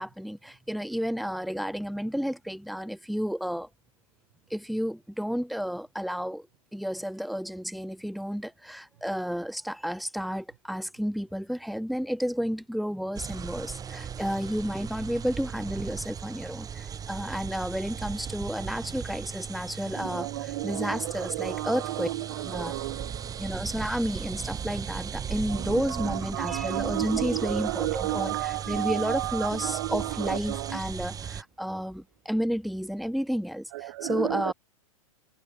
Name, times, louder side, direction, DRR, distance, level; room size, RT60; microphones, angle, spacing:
voice 1, 0.0-3.7 4.5-6.5 6.7-22.1 22.4-22.7 23.4-34.5, equal, ahead, 2.9 m, -31 dB
sound 1, 13.2-31.4, right 7 dB, 20° right, 7.1 m, -37 dB
voice 2, 20.0-23.3 25.5-25.6 26.0-30.8 33.8-34.5, right 18 dB, 50° right, 0.7 m, -32 dB
figure-of-eight pair, 105°, 18 cm